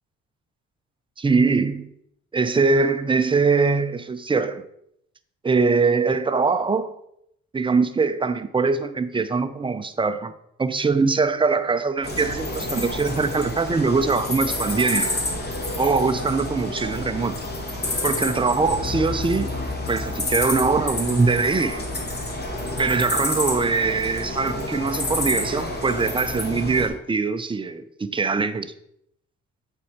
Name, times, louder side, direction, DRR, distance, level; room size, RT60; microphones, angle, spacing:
voice 1, 1.2-1.9 2.3-4.6 5.4-6.9 7.5-10.3 10.6-15.1 15.8-17.4 18.0-19.5 19.9-21.8 22.8-28.7, right 4 dB, 15° right, 0.5 m, -22 dB
sound 1, 12.0-26.9, left 1 dB, 35° left, 1.6 m, -29 dB
sound 2, 18.7-23.0, left 5 dB, 85° left, 2.1 m, -35 dB
8.2 x 4.4 x 4.3 m
cardioid pair, 90°, 30 cm